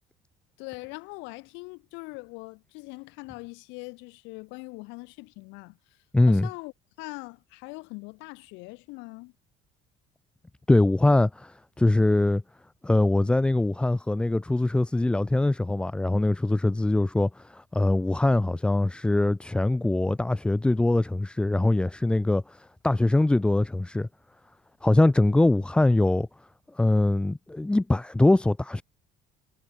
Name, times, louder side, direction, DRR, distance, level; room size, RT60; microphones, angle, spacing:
voice 1, 0.6-5.8 6.3-6.7 7.0-9.3, left 28 dB, 90° left, 1.7 m, -41 dB
voice 2, 6.1-6.5 10.7-12.4 12.8-24.1 24.8-26.3 26.7-28.8, left 2 dB, 5° left, 0.4 m, -23 dB
cardioid pair, 155°, 19 cm